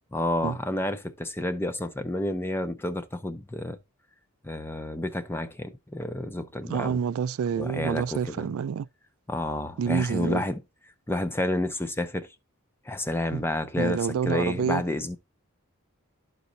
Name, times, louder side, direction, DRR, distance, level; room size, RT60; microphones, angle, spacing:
voice 1, 0.1-3.8 4.4-7.0 7.6-8.5 9.3-10.5 11.1-12.3 12.9-14.0 14.3-15.2, left 1 dB, 10° left, 0.5 m, -30 dB
voice 2, 6.7-8.9 9.8-10.4 13.3-13.4 13.8-14.8, right 7 dB, 70° right, 0.3 m, -28 dB
12.5 x 4.1 x 2.6 m
head